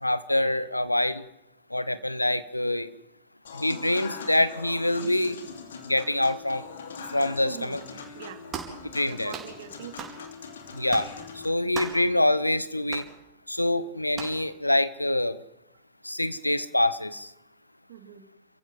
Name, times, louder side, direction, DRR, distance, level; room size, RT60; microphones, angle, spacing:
voice 1, 0.0-1.2 1.7-2.9 3.5-5.4 5.9-6.6 7.1-7.8 8.9-9.3 10.7-11.1 11.4-13.1 13.5-15.4 16.0-17.3, left 1 dB, 85° left, 16 dB, 0.9 m, -25 dB
Human voice / Acoustic guitar / Piano, 3.4-11.5, left 5 dB, 65° left, 2.7 m, -42 dB
voice 2, 7.4-7.8 8.1-8.5 9.0-10.1 17.9-18.3, right 10 dB, 60° right, 8 dB, 2.4 m, -43 dB
sound 1, 8.5-8.8 9.3-9.5 10.0-10.2 10.9-11.1 11.7-12.1 12.9-13.1 14.1-14.4, right 7 dB, 30° right, 4.4 m, -37 dB
29.0 x 15.0 x 7.7 m, 0.87 s
figure-of-eight pair, 90°, 0 cm